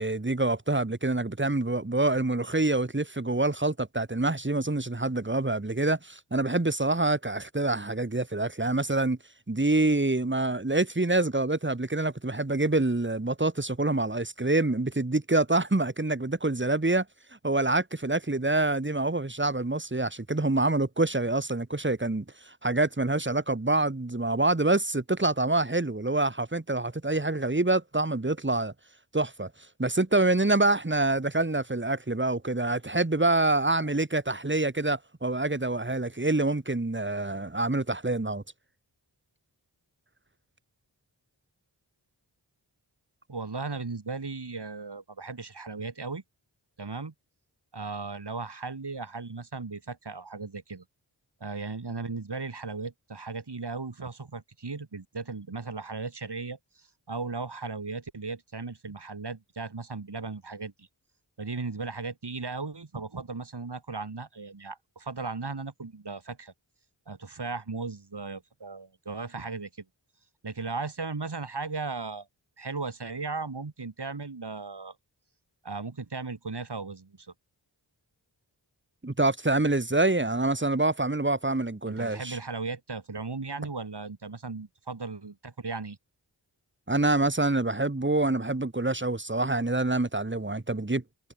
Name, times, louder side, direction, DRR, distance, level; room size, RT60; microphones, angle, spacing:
voice 1, 0.0-9.2 9.5-17.1 17.4-28.7 29.1-29.5 29.8-38.4 79.0-82.4 86.9-91.0, right 2 dB, 25° right, 2.6 m, -26 dB
voice 2, 43.3-46.2 46.8-47.1 47.7-50.8 51.4-60.9 61.4-66.5 67.1-69.7 70.4-72.3 72.6-74.9 75.6-77.3 81.9-86.0, right 4 dB, 60° right, 5.0 m, -36 dB
cardioid pair, 40°, 45 cm